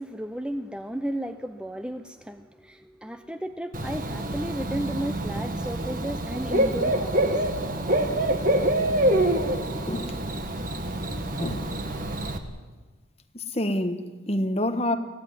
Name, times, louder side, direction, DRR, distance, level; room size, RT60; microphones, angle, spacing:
voice 1, 0.0-7.4 8.1-8.2, right 1 dB, 5° right, 0.7 m, -34 dB
Bird / Cricket, 3.7-12.4, right 1 dB, 45° right, 1.7 m, -26 dB
voice 2, 9.9-10.2 11.4-11.8 13.3-15.0, left 1 dB, 30° left, 1.4 m, -27 dB
24.0 x 16.0 x 10.0 m
head